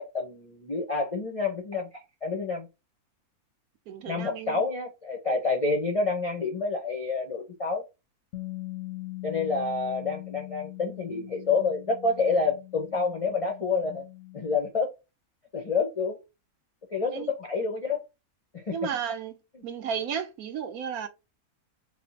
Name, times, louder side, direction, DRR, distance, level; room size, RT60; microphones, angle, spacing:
voice 1, 0.0-2.7 4.1-7.8 9.2-14.0 14.3-14.9 15.5-16.2 16.9-18.0 18.5-18.8, left 4 dB, 50° left, 0.4 m, -28 dB
voice 2, 3.9-4.6 17.1-17.3 18.7-19.3 19.6-21.1, right 7 dB, 75° right, 1.2 m, -33 dB
Bass guitar, 8.3-14.6, left 20 dB, 65° left, 0.8 m, -41 dB
4.1 x 2.1 x 4.0 m
omnidirectional pair, 1.6 m